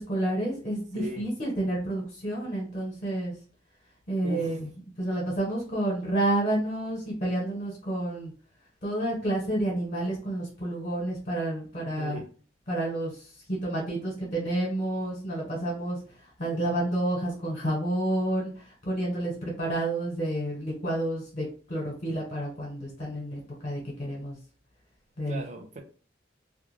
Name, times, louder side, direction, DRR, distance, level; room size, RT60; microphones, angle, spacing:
voice 1, 0.0-3.3 4.1-4.7 5.0-8.3 8.8-12.2 12.7-13.2 13.5-16.0 16.4-24.4 25.2-25.4, right 1 dB, 45° left, 1.0 m, -30 dB
voice 2, 0.9-1.3 4.2-4.6 12.0-12.3 25.3-25.8, right 2 dB, 40° right, 0.5 m, -38 dB
2.4 x 2.2 x 3.2 m
head